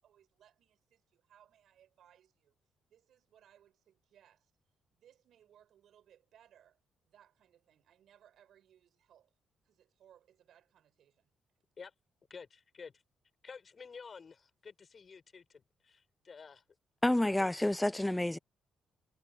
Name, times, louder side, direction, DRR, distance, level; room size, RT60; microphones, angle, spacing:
voice 1, 0.0-2.6 2.9-4.5 4.9-9.3 9.6-11.3, right 10 dB, 70° right, 6.9 m, -65 dB
voice 2, 12.3-13.0 13.4-16.6 17.4-17.6, left 5 dB, 40° left, 6.1 m, -51 dB
voice 3, 17.0-18.4, left 1 dB, 10° left, 0.4 m, -29 dB
cardioid pair, 90°, 0 cm